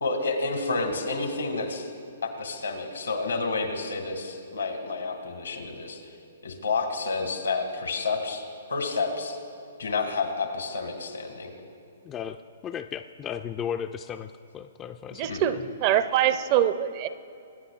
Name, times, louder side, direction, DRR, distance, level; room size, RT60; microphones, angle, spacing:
voice 1, 0.0-1.9 2.2-6.0 6.4-8.4 8.7-9.4 9.8-11.5 15.3-15.4, left 3 dB, 85° left, 3 dB, 1.9 m, -29 dB
voice 2, 12.0-15.3 15.5-15.7, left 8 dB, 20° left, 8 dB, 0.3 m, -35 dB
voice 3, 15.2-17.1, right 11 dB, 40° right, 12 dB, 0.5 m, -24 dB
22.5 x 9.9 x 2.4 m, 2.6 s
hypercardioid pair, 125°, 0 cm